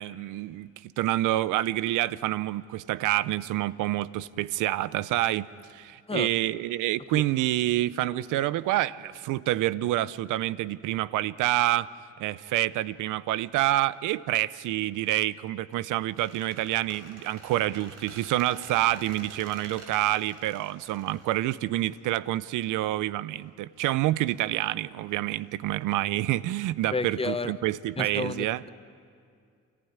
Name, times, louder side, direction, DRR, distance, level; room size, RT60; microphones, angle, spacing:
voice 1, 0.0-11.9 12.2-28.6, right 15 dB, 90° right, 19 dB, 0.6 m, -27 dB
Squeak, 16.2-22.0, right 2 dB, 55° right, 4.6 m, -47 dB
voice 2, 26.9-27.5 28.0-28.7, left 3 dB, 20° left, 12 dB, 0.9 m, -31 dB
27.5 x 15.0 x 9.5 m, 2.3 s
cardioid pair, 90°, 30 cm